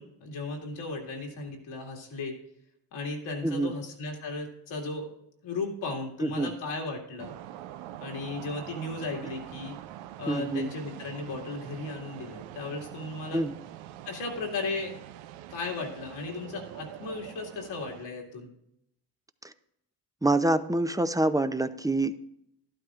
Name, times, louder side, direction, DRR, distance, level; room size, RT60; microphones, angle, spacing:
voice 1, 0.0-2.3 2.9-5.1 5.4-7.3 8.0-9.8 10.2-13.5 14.1-15.0 15.5-18.5, left 3 dB, 80° left, 0 dB, 2.3 m, -36 dB
voice 2, 6.2-6.5 10.3-10.7 13.3-13.5 20.2-22.3, right 2 dB, 10° right, 11 dB, 0.6 m, -26 dB
sound 1, 7.2-18.1, right 12 dB, 90° right, 0.5 m, -44 dB
12.0 x 12.0 x 2.5 m, 0.78 s
supercardioid pair, 50°, 46 cm